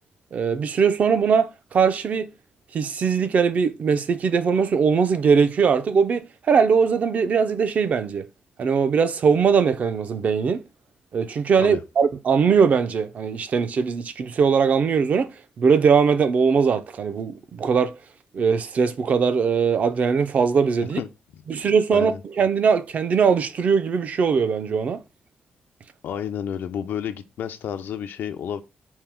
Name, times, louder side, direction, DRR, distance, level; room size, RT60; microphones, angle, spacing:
voice 1, 0.3-2.3 2.7-8.3 8.6-10.6 11.1-15.3 15.6-17.9 18.3-21.0 21.5-25.0, right 6 dB, 50° right, 0.4 m, -20 dB
voice 2, 21.0-21.4 21.9-22.2 26.0-28.6, left 8 dB, 75° left, 0.4 m, -31 dB
4.3 x 2.0 x 3.5 m
cardioid pair, 130°, 3 cm